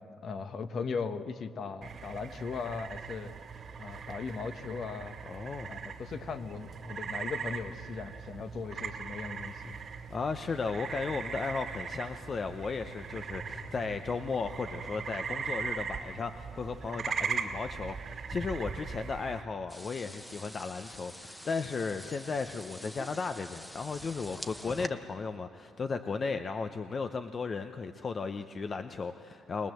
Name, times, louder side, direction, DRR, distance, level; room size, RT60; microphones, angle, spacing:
voice 1, 0.2-3.3 3.8-5.2 5.6-9.8, left 5 dB, 55° left, 8 dB, 1.3 m, -38 dB
sound 1, 1.8-19.4, right 6 dB, 55° right, 2.1 m, -39 dB
voice 2, 5.3-5.7 10.1-29.7, left 4 dB, 40° left, 8 dB, 0.8 m, -35 dB
sound 2, 19.7-24.9, equal, 5° left, 1.1 m, -46 dB
22.5 x 20.0 x 7.8 m, 2.3 s
cardioid pair, 90°, 0 cm